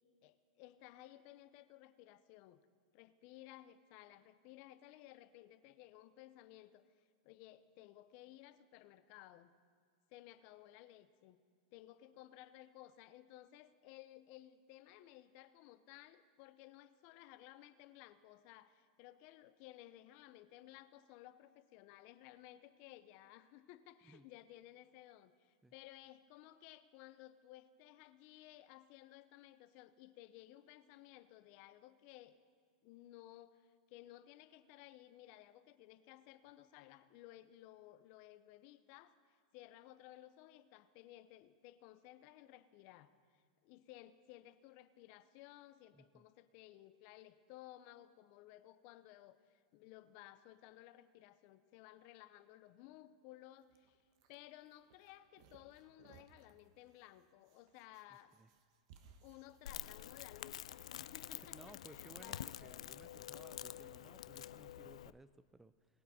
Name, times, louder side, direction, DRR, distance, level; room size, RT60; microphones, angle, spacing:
voice 1, 0.2-2.6 2.9-6.8 7.2-9.5 10.1-11.4 11.7-32.4 32.8-54.0 54.3-58.3 59.2-62.8, left 14 dB, 50° left, 13 dB, 0.7 m, -58 dB
voice 2, 45.9-46.3 58.4-58.5 61.4-66.0, right 2 dB, 10° right, 14 dB, 0.3 m, -60 dB
sound 1, 53.6-60.4, right 6 dB, 60° right, 1.1 m, -66 dB
Crackle, 59.7-65.1, left 11 dB, 80° left, 0.3 m, -48 dB
20.5 x 8.2 x 4.2 m, 2.1 s
hypercardioid pair, 115°, 3 cm